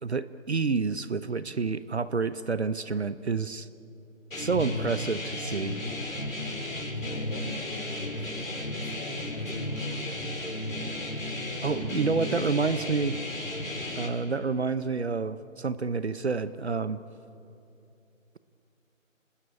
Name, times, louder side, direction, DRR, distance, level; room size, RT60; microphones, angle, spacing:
voice 1, 0.0-3.7 4.4-5.7 10.8-10.9 11.6-13.1 14.0-17.0, right 4 dB, 55° right, 14 dB, 0.9 m, -29 dB
sound 1, 4.3-14.1, left 1 dB, 75° left, 6.2 m, -34 dB
voice 2, 7.0-10.8 11.3-13.5, left 2 dB, 30° left, 2 dB, 3.1 m, -44 dB
29.5 x 20.0 x 8.7 m, 2.7 s
figure-of-eight pair, 160°, 40 cm